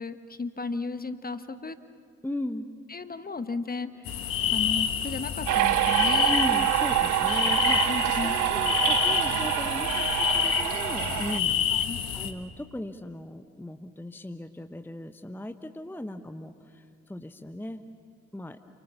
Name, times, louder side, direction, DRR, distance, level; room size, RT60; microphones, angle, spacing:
voice 1, 0.0-1.8 2.9-4.1 4.5-6.4 7.9-8.4 11.7-12.0, left 3 dB, 25° left, 11 dB, 1.3 m, -34 dB
voice 2, 2.2-2.7 6.3-11.5 12.1-17.8 18.3-18.6, left 1 dB, 5° left, 8 dB, 1.0 m, -37 dB
sound 1, 4.1-12.3, left 9 dB, 60° left, 1.6 m, -28 dB
sound 2, 5.5-11.4, right 16 dB, 50° right, 0.6 m, -26 dB
29.0 x 26.5 x 7.1 m, 2.3 s
figure-of-eight pair, 40°, 39 cm